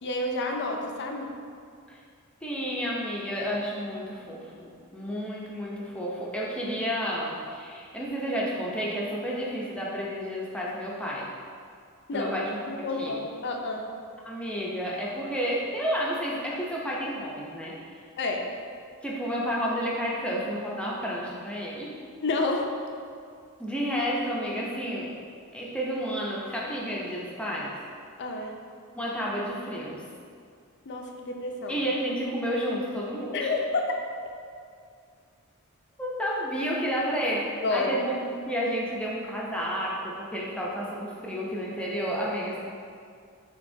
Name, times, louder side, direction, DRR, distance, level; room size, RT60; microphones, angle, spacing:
voice 1, 0.0-1.3 12.1-12.3 12.6-13.8 18.2-18.5 22.2-22.7 28.2-28.6 30.9-31.8 33.3-33.9 37.6-37.9, left 3 dB, 55° left, 2 dB, 0.5 m, -29 dB
voice 2, 2.4-11.3 12.1-13.2 14.2-17.8 19.0-21.9 23.6-25.1 25.5-27.7 29.0-30.0 31.7-33.5 36.0-42.6, equal, 5° left, -5 dB, 0.6 m, -31 dB
6.5 x 2.9 x 2.7 m, 2.2 s
head